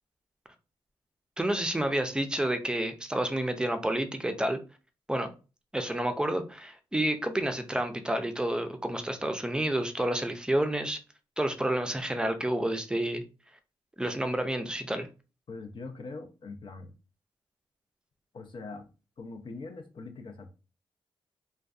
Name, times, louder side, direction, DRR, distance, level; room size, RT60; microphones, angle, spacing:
voice 1, 1.4-4.6 5.1-5.3 5.7-11.0 11.4-13.2 14.0-15.1, right 1 dB, 10° right, 7 dB, 0.4 m, -29 dB
voice 2, 15.5-16.9 18.3-18.8 19.2-20.5, left 3 dB, 55° left, 4 dB, 0.6 m, -42 dB
2.5 x 2.2 x 2.4 m, 0.32 s
cardioid pair, 80°, 10 cm